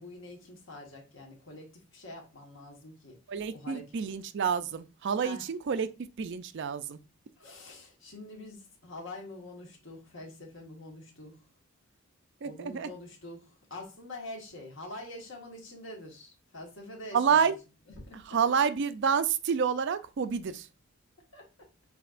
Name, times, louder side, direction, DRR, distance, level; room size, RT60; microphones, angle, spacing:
voice 1, 0.0-3.2 3.5-3.9 5.2-5.5 7.4-11.4 12.4-17.5 18.0-18.4 21.3-21.5, left 1 dB, 60° left, 1.5 m, -45 dB
voice 2, 3.3-5.9 6.2-7.0 12.4-12.9 17.1-17.5 18.1-20.7, right 6 dB, 55° right, 0.4 m, -28 dB
7.5 x 2.8 x 2.4 m
head